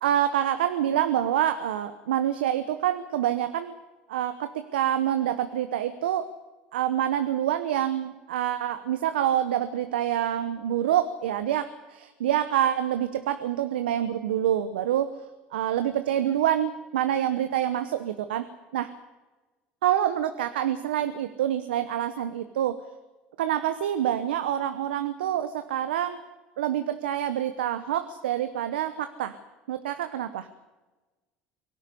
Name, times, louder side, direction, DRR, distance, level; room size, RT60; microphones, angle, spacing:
voice 1, 0.0-3.7 4.1-6.3 6.7-15.2 15.5-18.5 18.7-18.9 19.8-22.8 23.4-26.2 26.6-29.4 29.7-30.5, right 11 dB, 85° right, 10 dB, 0.9 m, -26 dB
23.0 x 12.5 x 9.9 m, 1.2 s
hypercardioid pair, 80°, 5 cm